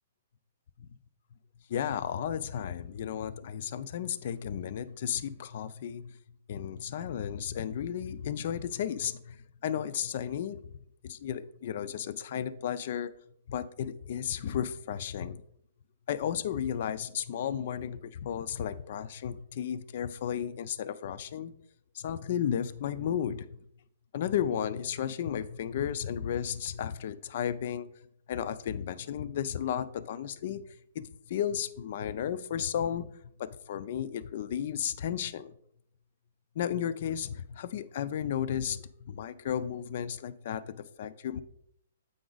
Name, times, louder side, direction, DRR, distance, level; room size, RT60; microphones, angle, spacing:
voice 1, 1.7-6.1 6.5-9.4 9.6-10.6 11.0-13.1 13.5-15.4 16.1-21.5 21.9-23.6 24.1-27.9 28.3-30.6 30.9-33.1 33.4-35.5 36.6-41.4, left 9 dB, 55° left, 0.4 m, -33 dB
7.7 x 5.0 x 3.9 m
hypercardioid pair, 150°, 0 cm